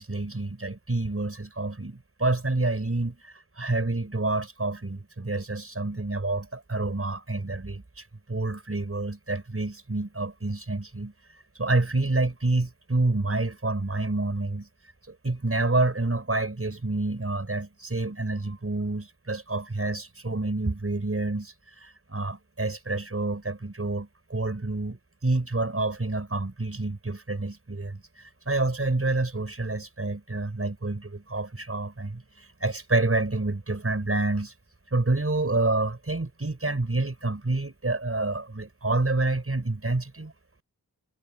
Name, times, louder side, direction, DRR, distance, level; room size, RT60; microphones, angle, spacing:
voice 1, 0.0-11.1 11.6-14.7 15.1-21.5 21.8-28.0 28.5-34.5 34.9-40.3, right 2 dB, 40° right, 5.2 m, -28 dB
cardioid pair, 50°, 37 cm